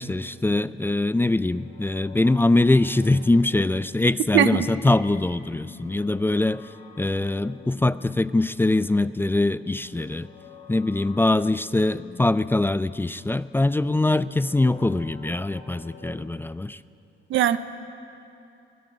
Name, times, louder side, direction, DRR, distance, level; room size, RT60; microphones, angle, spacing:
voice 1, 0.0-6.6 7.0-10.3 10.7-16.8, left 2 dB, 10° left, 15 dB, 0.5 m, -23 dB
sound 1, 0.6-16.3, left 4 dB, 30° left, 4.1 m, -48 dB
voice 2, 4.3-4.7 17.3-17.6, right 11 dB, 75° right, 12 dB, 0.9 m, -19 dB
23.0 x 16.5 x 9.6 m, 2.7 s
cardioid pair, 90°, 20 cm